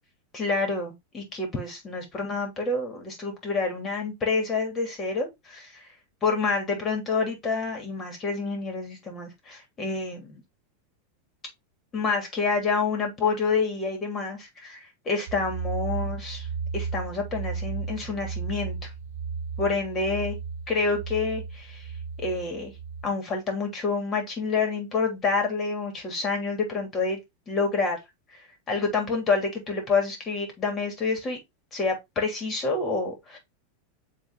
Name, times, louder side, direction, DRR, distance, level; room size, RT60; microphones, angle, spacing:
voice 1, 0.3-5.8 6.2-10.4 11.9-16.5 16.7-18.9 19.6-20.4 20.7-21.9 22.2-22.7 23.0-27.2 27.5-28.0 28.7-31.4 31.7-33.4, left 4 dB, 25° left, 3.1 m, -28 dB
sound 1, 15.3-23.1, right 5 dB, 70° right, 0.9 m, -34 dB
7.1 x 3.8 x 3.7 m
hypercardioid pair, 115°, 0 cm